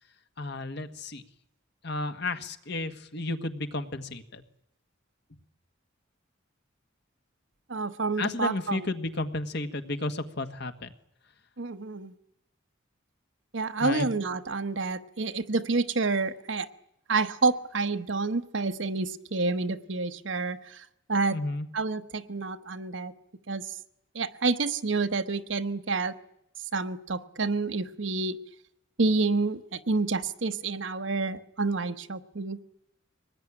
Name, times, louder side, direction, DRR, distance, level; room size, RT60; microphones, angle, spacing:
voice 1, 0.4-1.2 1.8-4.4 8.2-10.9 13.8-14.1 21.3-21.7, left 2 dB, 55° left, 8 dB, 1.6 m, -32 dB
voice 2, 7.7-8.8 11.6-12.1 13.5-16.7 17.1-21.4 21.7-23.1 23.5-23.7 24.1-26.1 26.7-28.4 29.0-32.6, right 3 dB, 65° right, 10 dB, 1.1 m, -29 dB
23.5 x 19.5 x 10.0 m, 0.81 s
head